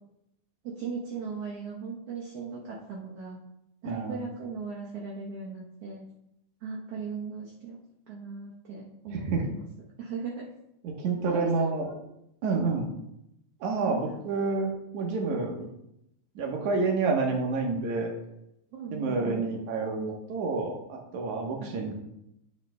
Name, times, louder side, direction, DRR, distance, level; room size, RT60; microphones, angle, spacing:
voice 1, 0.6-3.4 3.8-6.0 6.6-7.8 8.1-9.7 10.0-10.5 11.3-12.0 12.6-12.8 13.8-13.9 18.7-19.4 21.6-21.8, right 5 dB, 60° right, -4 dB, 1.9 m, -38 dB
voice 2, 3.8-4.2 9.1-9.4 10.8-11.9 12.4-12.9 13.6-15.7 16.4-18.1 18.9-21.9, right 4 dB, 75° right, 1 dB, 2.6 m, -29 dB
9.6 x 7.8 x 2.3 m, 0.82 s
omnidirectional pair, 3.4 m